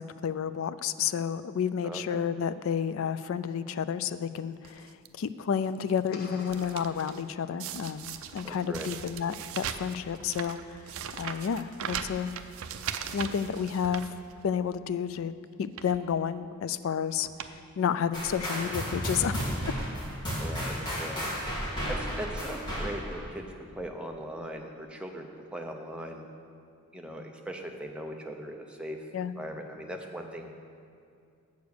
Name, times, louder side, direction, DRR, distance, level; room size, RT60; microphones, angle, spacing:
voice 1, 0.0-4.9 5.2-10.8 11.1-12.3 13.1-14.0 14.4-15.3 15.6-17.3 17.8-19.4 29.1-29.3, left 7 dB, 65° left, 14 dB, 0.3 m, -31 dB
voice 2, 1.8-2.2 8.4-8.9 20.4-21.3 21.9-26.3 26.9-29.0 29.4-30.5, equal, 5° right, 2 dB, 0.6 m, -39 dB
sound 1, 4.6-5.1 5.6-6.0 6.2-7.2 7.6-14.7 15.1-15.2 15.6-16.0 16.8-16.9 17.2-17.6 17.9-18.0 18.9-19.0 19.4-19.9 20.6-20.7 20.9-21.0, right 8 dB, 70° right, 0.4 m, -40 dB
sound 2, 6.1-8.0, left 2 dB, 45° left, 0.8 m, -48 dB
sound 3, 18.1-23.3, equal, 20° left, 2.3 m, -33 dB
8.0 x 6.9 x 6.5 m, 2.4 s
head